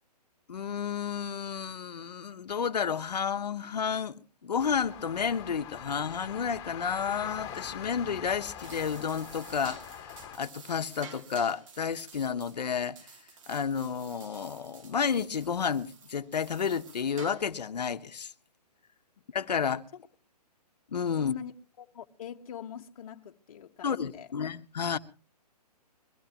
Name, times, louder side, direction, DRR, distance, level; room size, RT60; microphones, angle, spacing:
voice 1, 0.5-13.0 13.5-18.3 19.3-19.8 20.9-21.3 23.8-25.0, left 7 dB, 80° left, 1.2 m, -31 dB
sound 1, 4.6-10.4, left 9 dB, 20° left, 3.1 m, -43 dB
sound 2, 8.4-17.7, right 5 dB, 50° right, 2.3 m, -51 dB
voice 2, 21.2-21.5 21.8-24.3, left 8 dB, 55° left, 1.3 m, -43 dB
22.5 x 16.5 x 3.0 m
hypercardioid pair, 150°, 21 cm